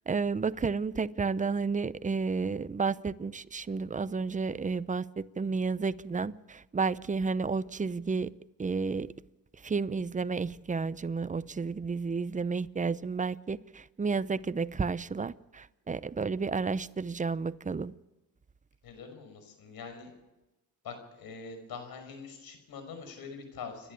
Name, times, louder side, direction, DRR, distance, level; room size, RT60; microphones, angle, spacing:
voice 1, 0.1-8.3 8.6-9.1 9.6-17.9, right 4 dB, 20° right, 0.8 m, -31 dB
voice 2, 18.8-20.1 20.8-23.9, left 5 dB, 70° left, 5.7 m, -44 dB
29.0 x 11.0 x 8.5 m
supercardioid pair, 65°, 37 cm